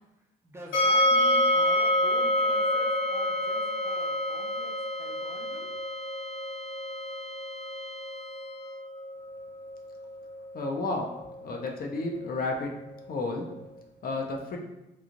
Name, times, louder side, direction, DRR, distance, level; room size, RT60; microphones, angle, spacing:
voice 1, 0.4-4.7 5.0-5.7, equal, 15° right, -1 dB, 0.4 m, -46 dB
sound 1, 0.7-13.7, equal, 70° left, 1.4 m, -29 dB
sound 2, 1.1-8.8, left 1 dB, 40° right, 0.9 m, -43 dB
Chink clink, 2.5-6.7, left 7 dB, 65° right, 0.6 m, -43 dB
voice 2, 10.5-11.1 11.4-12.7 13.1-13.4 14.0-14.6, left 2 dB, 50° left, 1 dB, 0.5 m, -31 dB
3.0 x 2.3 x 2.5 m, 0.96 s
cardioid pair, 90°, 20 cm